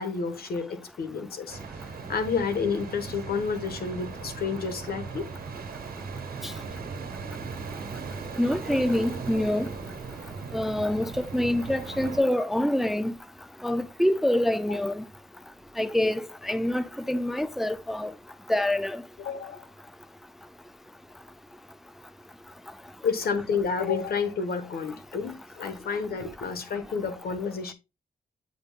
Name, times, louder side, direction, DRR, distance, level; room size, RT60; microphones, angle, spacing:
voice 1, 0.0-1.6 2.1-5.3 8.7-8.8 19.2-19.7 23.0-27.7, left 5 dB, 80° left, 1.1 m, -30 dB
sound 1, 1.5-12.2, right 5 dB, 75° right, 1.4 m, -38 dB
voice 2, 8.4-9.7 10.5-13.1 13.6-15.0 15.8-18.1 18.5-19.0, left 1 dB, ahead, 0.3 m, -26 dB
8.6 x 5.2 x 2.3 m
cardioid pair, 90°, 16 cm